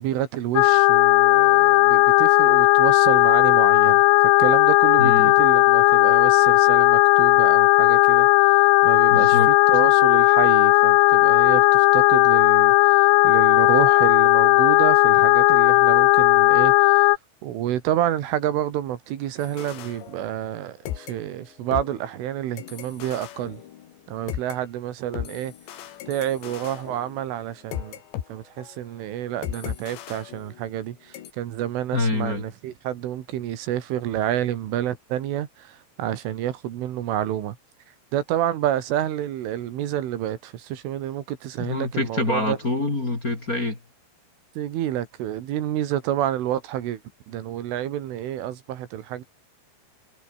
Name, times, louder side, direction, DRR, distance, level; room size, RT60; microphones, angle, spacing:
voice 1, 0.0-4.0 4.4-8.3 8.8-17.1 17.4-23.6 24.1-25.5 26.1-28.0 28.3-37.6 38.1-42.6 44.6-47.0 47.3-49.2, right 12 dB, 80° right, 4.5 m, -29 dB
sound 1, 0.6-17.2, left 22 dB, 90° left, 3.1 m, -16 dB
voice 2, 5.0-5.3 9.1-9.5 31.9-32.4 41.6-43.8, left 2 dB, 20° left, 3.2 m, -25 dB
sound 2, 19.4-20.6 20.9-24.6 25.1-28.3 28.6-28.8 29.4-30.9 31.1-31.3, left 11 dB, 65° left, 4.1 m, -37 dB
omnidirectional pair, 5.7 m